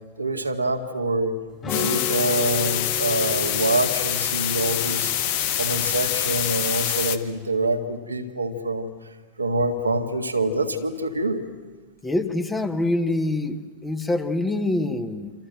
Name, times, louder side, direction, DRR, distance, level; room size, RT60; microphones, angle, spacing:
voice 1, 0.2-1.4 1.7-5.1 5.6-8.9 9.4-11.4, right 2 dB, 80° right, 3 dB, 1.9 m, -25 dB
sound 1, 1.6-6.8, left 5 dB, 30° left, 4.0 m, -35 dB
sound 2, 1.7-7.2, left 11 dB, 50° left, 1.3 m, -25 dB
voice 2, 12.0-15.3, left 2 dB, 10° left, 8 dB, 1.7 m, -25 dB
27.5 x 26.5 x 7.8 m, 1.4 s
figure-of-eight pair, 90°, 0 cm